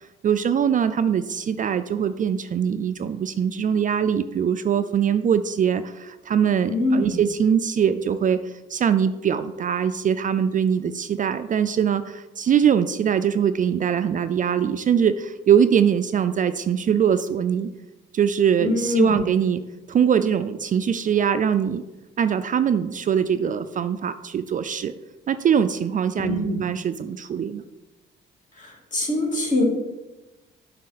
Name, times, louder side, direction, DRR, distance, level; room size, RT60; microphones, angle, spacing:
voice 1, 0.2-17.7 18.1-19.6 19.9-21.8 22.2-24.9 25.3-27.6, right 8 dB, 40° right, 11 dB, 0.4 m, -22 dB
voice 2, 6.7-7.1 18.6-19.2 26.2-26.6 28.5-29.6, left 2 dB, 40° left, -2 dB, 2.5 m, -24 dB
7.5 x 5.6 x 4.1 m, 1.1 s
cardioid pair, 90°, 20 cm